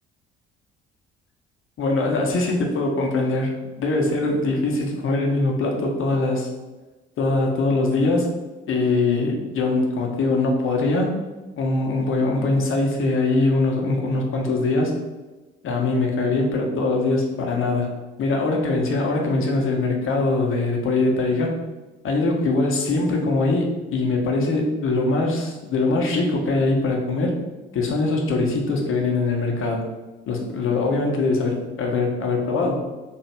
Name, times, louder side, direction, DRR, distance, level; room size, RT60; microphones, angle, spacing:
voice 1, 1.8-6.5 7.2-8.3 8.7-11.1 11.6-15.0 15.6-17.9 18.2-21.6 22.0-27.4 27.7-29.9 30.3-32.8, left 2 dB, 40° left, 1 dB, 1.1 m, -22 dB
3.5 x 3.1 x 4.4 m, 1.2 s
figure-of-eight pair, 50°, 31 cm